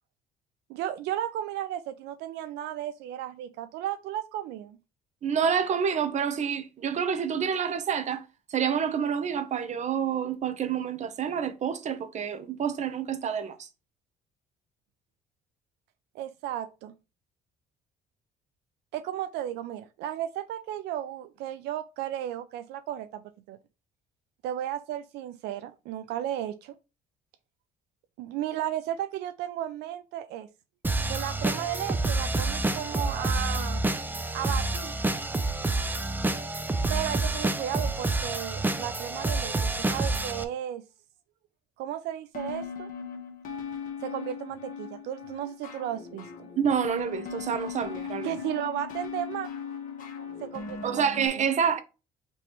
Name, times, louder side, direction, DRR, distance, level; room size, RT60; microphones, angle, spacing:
voice 1, 0.7-4.8 16.1-16.9 18.9-23.6 24.4-26.8 28.2-30.5 31.1-33.8 34.3-35.0 36.9-40.8 41.8-42.9 44.0-46.5 48.2-49.5 50.4-51.1, right 12 dB, 85° right, 0.4 m, -34 dB
voice 2, 5.2-8.2 8.5-13.7 46.6-48.3 50.8-51.8, right 7 dB, 45° right, 0.8 m, -28 dB
sound 1, 30.8-40.4, right 2 dB, 10° right, 0.5 m, -28 dB
sound 2, 42.3-51.3, left 6 dB, 50° left, 1.3 m, -38 dB
5.3 x 3.2 x 3.0 m
cardioid pair, 110°, 17 cm